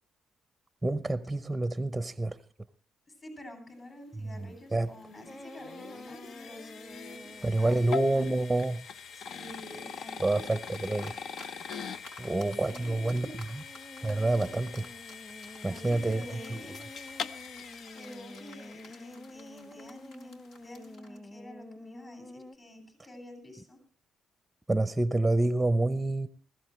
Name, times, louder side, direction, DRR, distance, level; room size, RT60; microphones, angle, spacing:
voice 1, 0.8-2.4 4.2-4.9 7.4-8.8 10.2-11.1 12.2-13.3 13.5-13.6 14.0-14.9 15.6-16.2 24.7-26.3, right 2 dB, 10° right, 0.7 m, -28 dB
voice 2, 3.1-8.4 9.1-10.5 12.7-13.3 15.7-16.8 17.9-23.8, left 1 dB, 35° left, 7.5 m, -48 dB
sound 1, 4.4-19.6, left 6 dB, 65° left, 0.7 m, -43 dB
sound 2, 5.3-7.7 13.4-22.5, left 1 dB, 15° left, 1.3 m, -49 dB
sound 3, 10.7-11.5 11.7-21.2, left 2 dB, 80° left, 4.2 m, -51 dB
20.0 x 16.0 x 3.2 m
cardioid pair, 90°, 0 cm